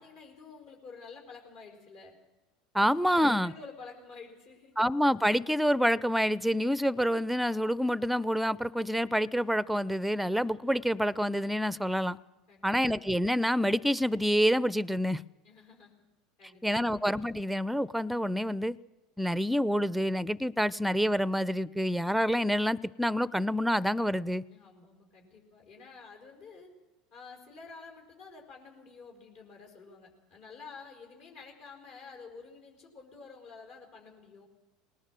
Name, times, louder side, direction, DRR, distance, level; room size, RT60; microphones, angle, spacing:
voice 1, 0.0-2.1 2.8-4.8 12.5-12.7 15.4-16.0 16.4-17.0 24.5-26.7 27.1-34.5, left 4 dB, 60° left, 5.0 m, -50 dB
voice 2, 2.7-3.5 4.8-12.2 12.6-15.2 16.6-18.8 19.2-24.4, equal, ahead, 0.6 m, -27 dB
19.5 x 18.5 x 7.6 m
hypercardioid pair, 80°, 2 cm